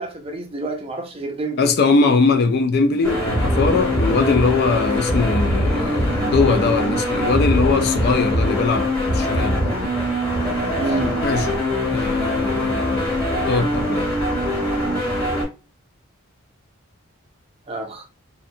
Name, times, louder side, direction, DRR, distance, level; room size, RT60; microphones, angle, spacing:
voice 1, 0.0-1.7 10.7-11.2 17.7-18.1, right 2 dB, 25° right, 0.5 m, -28 dB
voice 2, 1.6-9.6 11.2-11.5 11.9-13.1 13.5-14.1, left 4 dB, 45° left, 0.3 m, -20 dB
sound 1, 3.0-15.4, left 1 dB, 5° left, 1.2 m, -22 dB
2.6 x 2.2 x 2.5 m
head